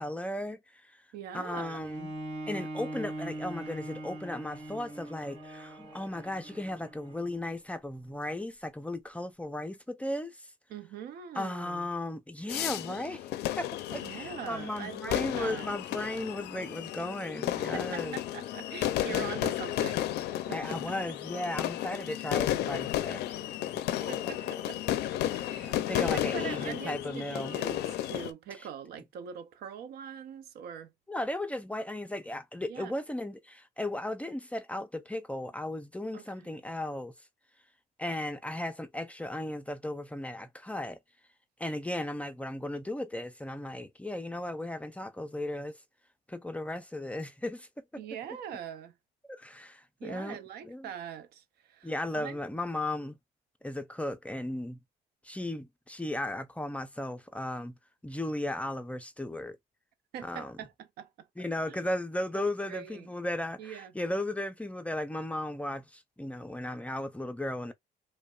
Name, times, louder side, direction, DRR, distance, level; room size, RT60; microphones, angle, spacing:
voice 1, 0.0-1.0 1.3-2.1 2.5-10.5 11.4-13.3 13.6-18.2 19.1-19.5 20.5-24.6 25.5-27.6 28.6-28.7 31.1-37.1 38.0-41.0 41.6-45.8 46.3-47.7 49.3-50.4 50.6-50.9 51.8-53.1 53.6-54.8 55.2-57.7 58.0-59.6 60.2-60.6 61.4-67.7, left 1 dB, 10° left, 0.4 m, -36 dB
voice 2, 1.1-1.8 10.7-11.9 13.9-15.7 17.7-20.0 20.5-20.8 24.1-30.9 32.7-32.9 36.1-36.6 48.0-48.9 50.0-52.4 60.1-61.3 61.7-61.8 62.3-63.1 63.6-63.9, right 8 dB, 70° right, 0.6 m, -43 dB
Bowed string instrument, 1.8-7.4 8.1-8.2, right 1 dB, 35° right, 2.1 m, -41 dB
sound 1, 12.5-28.3, left 13 dB, 75° left, 0.5 m, -33 dB
5.0 x 2.1 x 2.4 m
cardioid pair, 110°, 17 cm